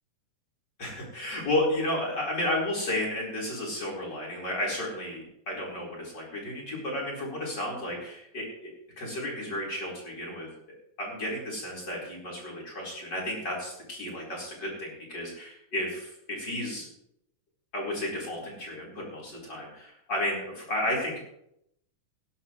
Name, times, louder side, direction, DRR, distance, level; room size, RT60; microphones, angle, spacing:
voice 1, 0.8-10.5 11.0-16.9 17.7-21.2, left 1 dB, 30° left, -3 dB, 5.0 m, -32 dB
19.0 x 11.0 x 3.2 m, 0.77 s
omnidirectional pair, 3.6 m